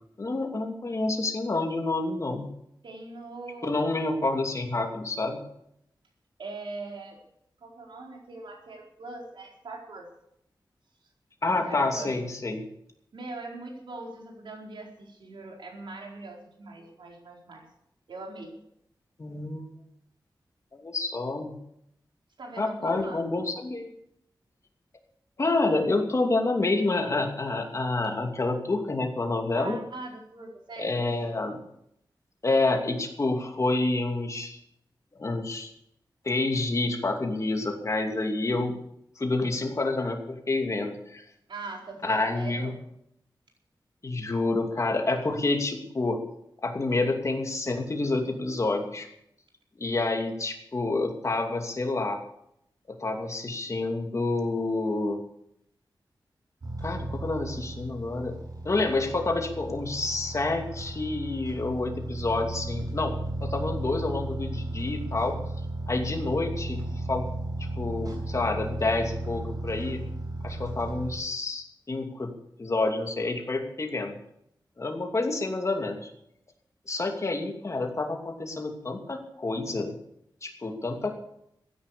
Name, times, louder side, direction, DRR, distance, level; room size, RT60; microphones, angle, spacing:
voice 1, 0.2-2.5 3.6-5.4 11.4-12.6 19.2-19.6 20.7-21.6 22.6-23.9 25.4-29.8 30.8-31.6 32.4-34.6 35.1-35.7 36.2-38.8 39.2-41.2 42.0-42.7 44.0-46.2 46.6-49.1 49.8-52.2 52.9-55.2 56.8-58.4 58.6-63.1 63.4-65.4 65.9-67.3 67.8-70.0 70.4-72.3 72.6-74.1 74.8-76.1 76.9-79.9 80.4-81.2, left 2 dB, 40° left, 3 dB, 2.7 m, -28 dB
voice 2, 2.8-3.9 6.4-7.2 7.6-10.1 11.5-12.1 13.1-17.6 18.1-18.5 22.4-23.2 29.6-30.9 41.5-42.7, right 3 dB, 85° right, 0 dB, 4.5 m, -41 dB
sound 1, 56.6-71.2, right 1 dB, 50° right, 6.5 m, -35 dB
15.5 x 10.5 x 6.9 m, 0.75 s
wide cardioid pair, 130°, 8 cm